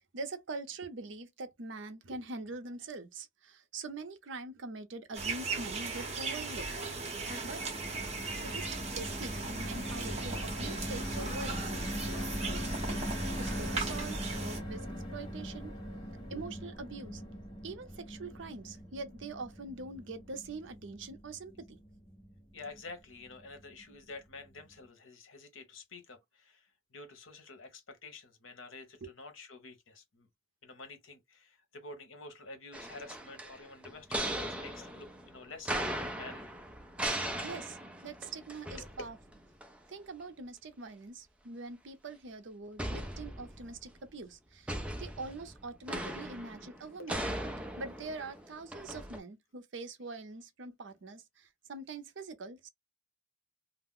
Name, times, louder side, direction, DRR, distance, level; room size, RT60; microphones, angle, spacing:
voice 1, 0.1-6.7 7.4-7.6 8.4-11.6 13.4-14.8 15.1-15.7 16.3-17.2 17.6-21.8 29.0-29.1 37.4-39.2 39.9-44.7 45.0-47.2 47.8-52.7, right 3 dB, 70° right, 0.6 m, -43 dB
sound 1, 5.1-14.6, right 4 dB, 35° right, 0.8 m, -38 dB
sound 2, 6.6-22.9 23.3-23.4 23.7-23.9, equal, 25° left, 0.9 m, -40 dB
voice 2, 22.5-30.3 30.6-36.5 38.8-38.9 47.0-47.1, left 3 dB, 85° left, 0.9 m, -49 dB
sound 3, 32.7-39.3 39.6-39.7 42.8-43.8 44.7-49.2, right 1 dB, 5° right, 0.4 m, -38 dB
2.4 x 2.0 x 3.5 m
head